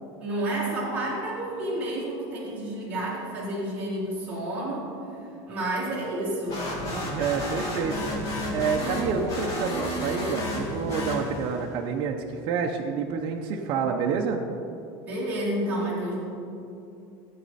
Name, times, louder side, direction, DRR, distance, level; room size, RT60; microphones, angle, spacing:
voice 1, 0.2-5.2 5.5-7.1 15.1-16.2, right 1 dB, 10° right, -9 dB, 3.0 m, -30 dB
sound 1, 6.5-11.7, left 1 dB, 25° left, 1.9 m, -31 dB
voice 2, 7.1-8.2 8.5-14.4, right 5 dB, 40° right, 1 dB, 0.7 m, -28 dB
14.5 x 8.4 x 4.2 m, 2.7 s
supercardioid pair, 170°, 13 cm